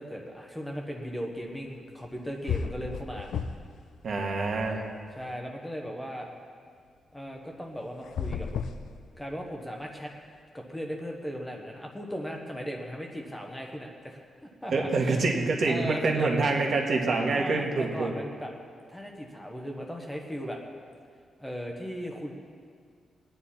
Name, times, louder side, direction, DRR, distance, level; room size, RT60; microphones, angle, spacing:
voice 1, 0.0-3.3 5.1-6.3 7.1-8.5 9.1-10.1 10.5-14.2 14.6-14.9 15.6-16.4 17.3-18.5 18.9-20.6 21.4-22.3, equal, 5° left, 1 dB, 1.1 m, -37 dB
sound 1, 2.0-2.2 2.5-3.8 4.1-5.2 8.0-9.5, left 6 dB, 85° left, 0.6 m, -34 dB
voice 2, 4.0-4.8 14.7-18.1, right 3 dB, 50° right, 1 dB, 1.7 m, -26 dB
21.5 x 9.8 x 4.3 m, 2.1 s
wide cardioid pair, 170°, 0 cm